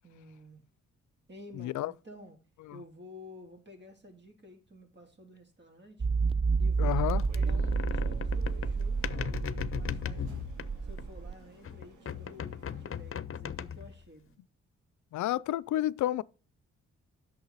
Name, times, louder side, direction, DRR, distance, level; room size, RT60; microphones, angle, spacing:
voice 1, 0.0-0.6 1.3-2.4 2.7-6.1 6.6-10.4 10.8-14.4, left 1 dB, 35° right, 3.3 m, -52 dB
voice 2, 1.6-1.9 2.7-2.8 6.8-7.2 15.1-16.2, left 14 dB, 75° left, 0.5 m, -30 dB
sound 1, 6.0-11.3, right 4 dB, 20° right, 0.3 m, -30 dB
sound 2, 7.0-13.1, right 5 dB, 85° right, 2.5 m, -55 dB
sound 3, 7.1-11.3 11.6-14.1, left 8 dB, 45° left, 0.8 m, -38 dB
8.4 x 6.6 x 4.1 m
supercardioid pair, 55°, 30 cm